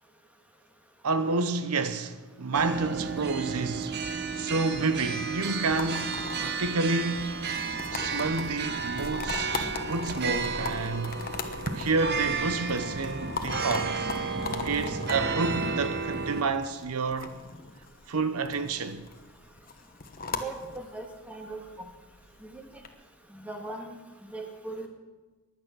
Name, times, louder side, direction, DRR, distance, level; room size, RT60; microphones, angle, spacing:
voice 1, 1.0-4.0 4.3-7.4 7.9-11.2 11.7-14.1 14.6-17.4 18.1-19.1, right 3 dB, 75° right, 0.8 m, -29 dB
sound 1, 2.5-16.4, right 4 dB, 45° right, 1.1 m, -32 dB
sound 2, 5.7-22.9, left 4 dB, 40° left, 1.1 m, -40 dB
voice 2, 20.3-21.6 22.4-22.6 23.3-24.0 24.3-24.9, right 2 dB, 5° right, 1.7 m, -39 dB
15.5 x 10.5 x 6.2 m
head